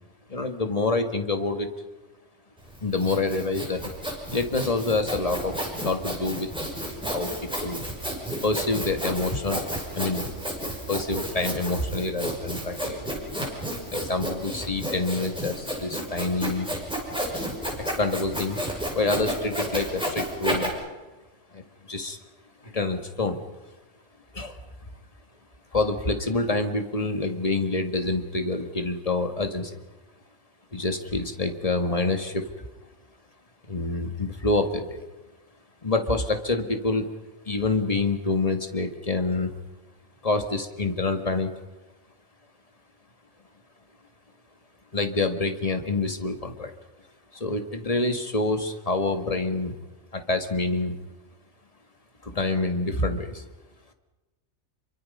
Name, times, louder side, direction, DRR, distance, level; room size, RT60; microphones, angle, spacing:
voice 1, 0.3-1.7 2.8-3.8 4.2-5.6 5.8-6.5 7.1-7.8 8.4-9.6 9.9-10.2 10.9-13.1 13.9-16.7 17.8-18.6 18.9-20.7 21.5-21.6 21.9-22.2 22.6-23.4 24.3-24.6 25.7-29.8 30.7-32.6 33.7-35.0 35.8-37.1 37.5-39.5 40.2-41.5 44.9-46.7 47.3-49.7 50.1-50.9 52.2-53.4, left 3 dB, 30° left, 6 dB, 2.0 m, -27 dB
Sawing, 2.6-20.7, equal, 5° right, 5.9 m, -32 dB
28.0 x 24.0 x 5.5 m, 1.2 s
omnidirectional pair, 1.2 m